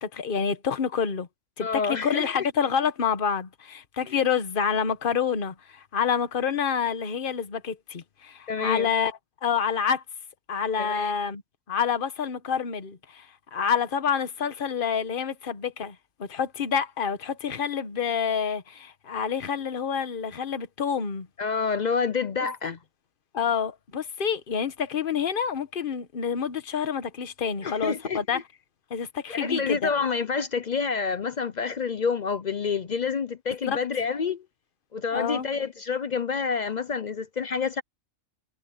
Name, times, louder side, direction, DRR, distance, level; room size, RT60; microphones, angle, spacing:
voice 1, 0.0-1.3 1.6-10.0 10.5-11.4 11.7-21.3 22.6-22.7 23.3-28.4 28.9-29.9 33.6-33.8 35.1-35.5, left 7 dB, 40° left, 1.2 m, -28 dB
voice 2, 1.6-2.5 8.5-8.9 10.8-11.1 21.4-22.8 27.6-28.4 29.3-34.4 34.9-37.8, left 5 dB, 60° left, 0.4 m, -28 dB
omnidirectional pair, 1.6 m